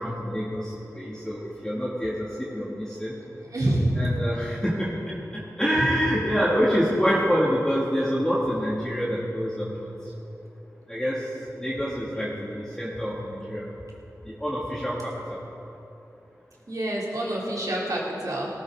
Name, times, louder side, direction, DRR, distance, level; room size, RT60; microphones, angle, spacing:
voice 1, 0.0-3.1 3.9-5.0 5.3-9.9 10.9-11.2 11.6-13.7 14.2-15.4, equal, 10° left, -7 dB, 2.6 m, -26 dB
voice 2, 3.4-3.9 16.7-18.5, right 1 dB, 65° right, -4 dB, 3.5 m, -27 dB
18.0 x 14.5 x 4.0 m, 2.8 s
cardioid pair, 40°, 7 cm